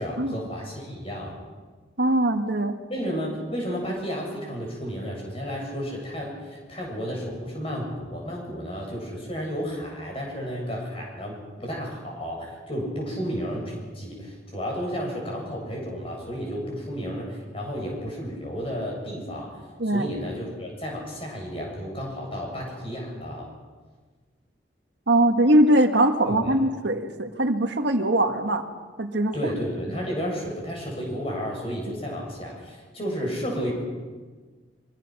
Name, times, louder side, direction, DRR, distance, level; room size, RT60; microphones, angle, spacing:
voice 1, 0.0-1.4 2.9-19.6 19.8-23.5 26.3-26.6 29.3-33.7, equal, 30° left, -1 dB, 7.9 m, -32 dB
voice 2, 2.0-2.7 19.8-20.1 25.1-28.6 29.0-29.3 30.0-30.1, right 1 dB, 70° right, 5 dB, 1.8 m, -21 dB
25.5 x 24.5 x 6.2 m, 1.4 s
head